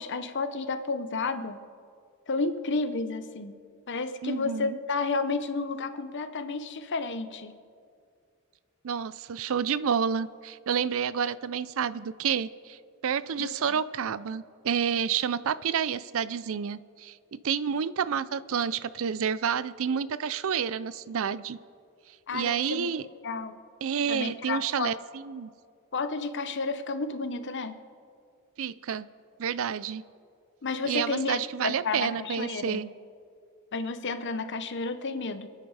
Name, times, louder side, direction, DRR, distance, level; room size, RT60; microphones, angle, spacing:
voice 1, 0.0-1.6 2.3-3.6 3.9-7.5 13.4-13.8 22.3-22.9 23.2-23.6 24.1-24.9 25.9-27.8 30.6-32.8 33.7-35.5, left 3 dB, 55° left, 10 dB, 0.9 m, -31 dB
voice 2, 4.2-4.8 8.8-21.6 22.3-23.1 23.8-25.5 28.6-29.1 29.4-30.0 30.8-32.9, right 7 dB, 65° right, 17 dB, 0.5 m, -29 dB
27.5 x 9.3 x 4.9 m, 2.3 s
head